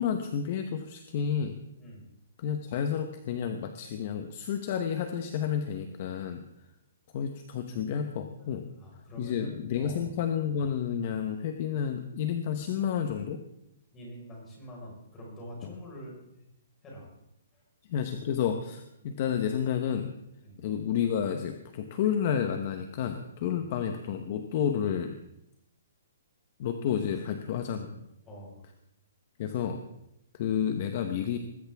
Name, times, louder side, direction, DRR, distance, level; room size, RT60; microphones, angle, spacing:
voice 1, 0.0-1.6 2.4-6.4 7.1-8.7 9.2-13.4 15.6-15.7 17.9-20.1 20.6-25.2 26.6-28.1 29.4-29.8 30.3-31.4, left 8 dB, 35° left, 6 dB, 1.0 m, -30 dB
voice 2, 8.8-10.1 13.9-16.2 16.8-17.1 17.5-17.6 20.4-20.6 23.5-23.7 27.1-27.3 28.3-28.6, equal, 15° left, -3 dB, 4.8 m, -45 dB
19.5 x 15.5 x 3.5 m, 0.82 s
hypercardioid pair, 170°, 0 cm